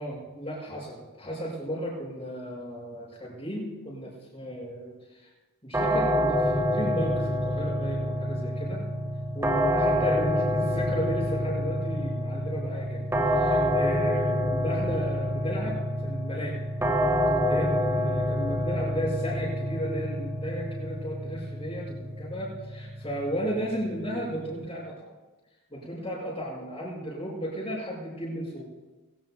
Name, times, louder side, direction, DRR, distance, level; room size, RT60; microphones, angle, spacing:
voice 1, 0.0-5.3 5.6-8.8 9.3-13.1 13.3-16.6 17.4-25.1 25.7-28.7, equal, 20° left, -11 dB, 6.2 m, -34 dB
sound 1, 5.7-24.6, equal, 10° right, 1.7 m, -27 dB
21.5 x 18.0 x 2.4 m, 1.2 s
head